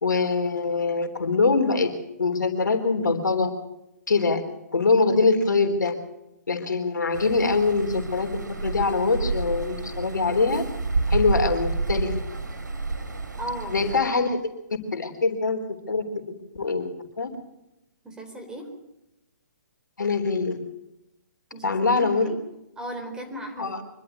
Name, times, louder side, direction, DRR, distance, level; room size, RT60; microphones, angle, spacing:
voice 1, 0.0-1.9 2.2-3.5 4.1-4.4 4.7-6.0 6.5-8.3 8.6-10.6 11.1-12.2 13.7-14.4 14.9-15.6 15.9-16.0 16.6-17.3 20.0-20.6 21.6-22.3 23.6-23.8, left 4 dB, 85° left, 7 dB, 3.6 m, -23 dB
sound 1, 7.1-14.0, right 3 dB, 85° right, 3.6 m, -29 dB
voice 2, 13.4-13.9 18.0-18.7 21.5-22.4 22.8-23.8, right 1 dB, 5° right, 3 dB, 4.2 m, -36 dB
25.0 x 12.5 x 8.3 m, 0.88 s
hypercardioid pair, 140°, 10 cm